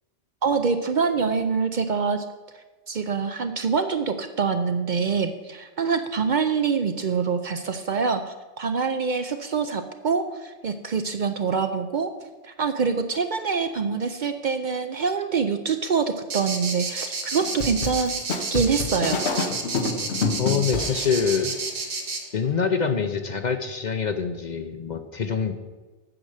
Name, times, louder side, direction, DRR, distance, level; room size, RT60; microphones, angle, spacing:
voice 1, 0.4-2.2 2.9-12.1 12.4-18.1 18.5-19.2, right 5 dB, 55° right, 8 dB, 0.6 m, -25 dB
sound 1, 16.3-22.2, right 4 dB, 80° right, 1.5 m, -30 dB
sound 2, 17.4-21.7, left 4 dB, 80° left, 1.3 m, -28 dB
voice 2, 20.4-21.6 22.3-25.5, left 6 dB, 50° left, 8 dB, 0.7 m, -25 dB
8.7 x 6.5 x 6.5 m, 1.3 s
omnidirectional pair, 1.1 m